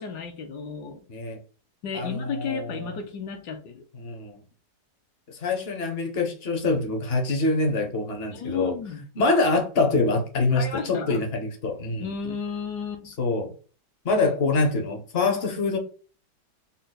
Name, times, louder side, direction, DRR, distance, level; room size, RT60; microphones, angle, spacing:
voice 1, 0.0-1.0 1.8-3.8 8.3-9.0 10.6-11.2 12.0-13.1, left 5 dB, 75° left, 1.3 m, -33 dB
voice 2, 1.1-1.4 1.9-3.0 3.9-4.4 5.3-8.8 9.2-12.1 13.1-13.5 14.0-15.8, left 3 dB, 45° left, 0.8 m, -25 dB
3.8 x 2.2 x 4.0 m
omnidirectional pair, 1.9 m